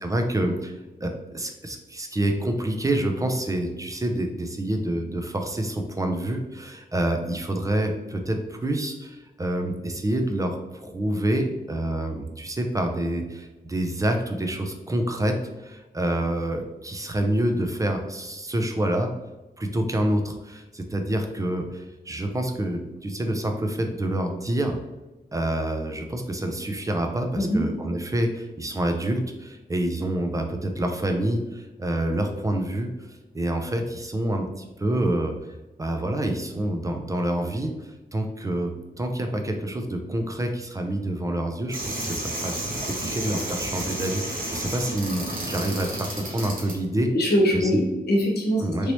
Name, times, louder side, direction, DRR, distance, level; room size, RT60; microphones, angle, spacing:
voice 1, 0.0-19.1 19.6-24.8 25.3-35.3 35.8-42.6 42.8-47.1 47.5-47.7 48.6-48.9, right 1 dB, 20° right, 4 dB, 0.4 m, -27 dB
sound 1, 41.7-46.7, right 1 dB, 60° right, 0.9 m, -31 dB
voice 2, 47.1-48.9, equal, 85° left, -1 dB, 0.9 m, -22 dB
3.0 x 2.7 x 2.9 m, 1.1 s
wide cardioid pair, 115°, 16 cm